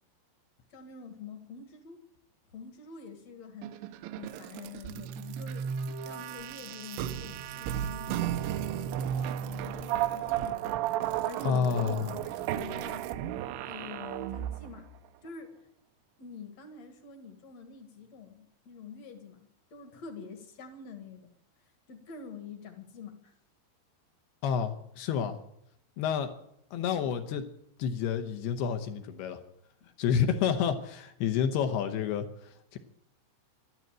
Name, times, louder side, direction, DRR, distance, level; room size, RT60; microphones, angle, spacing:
voice 1, 0.7-2.0 2.5-3.7 4.2-5.8 6.0-8.3 8.8-13.1 13.6-14.9 15.2-15.6 16.2-21.3 21.9-23.3 29.8-29.9, left 5 dB, 55° left, 7 dB, 2.0 m, -46 dB
sound 1, 3.6-14.9, right 10 dB, 80° right, 2.9 m, -34 dB
voice 2, 11.4-12.1 24.4-25.4 26.0-26.3 26.7-27.4 27.8-29.4 30.0-32.8, left 7 dB, 75° left, 8 dB, 2.6 m, -29 dB
12.5 x 12.0 x 8.8 m, 0.74 s
omnidirectional pair, 5.4 m